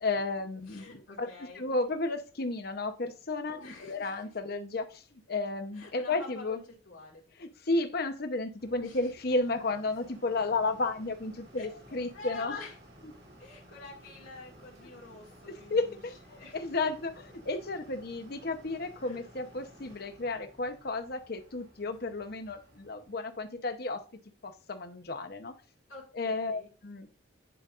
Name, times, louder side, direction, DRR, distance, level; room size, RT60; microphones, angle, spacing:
voice 1, 0.0-1.3 1.5-5.0 5.3-6.6 7.4-12.6 15.5-24.0 24.4-25.5 26.1-27.1, left 3 dB, 50° left, 8 dB, 0.8 m, -33 dB
voice 2, 0.7-1.6 3.6-4.4 5.7-7.3 8.8-9.1 11.5-11.7 12.1-12.8 13.4-16.0 16.3-16.8 19.0-19.3 25.9-26.7, left 3 dB, 85° left, -4 dB, 1.9 m, -47 dB
sound 1, 8.6-23.3, equal, 55° right, 2.3 m, -56 dB
10.0 x 5.2 x 2.5 m, 0.35 s
head